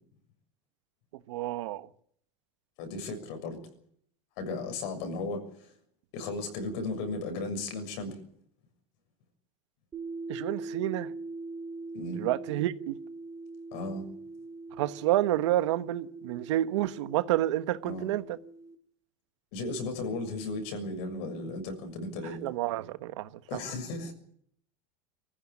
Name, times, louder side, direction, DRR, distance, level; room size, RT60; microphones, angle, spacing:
voice 1, 1.3-1.9 10.3-11.1 12.1-13.0 14.8-18.2 22.4-23.3, right 14 dB, 80° right, 1.3 m, -29 dB
voice 2, 2.8-3.6 4.4-5.7 6.1-8.2 11.9-12.2 13.7-14.0 17.8-18.1 19.5-22.4 23.5-24.1, left 2 dB, 60° left, 6.8 m, -35 dB
sound 1, 9.9-18.8, right 3 dB, 20° right, 2.8 m, -42 dB
24.0 x 15.5 x 9.9 m
supercardioid pair, 150°, 15 cm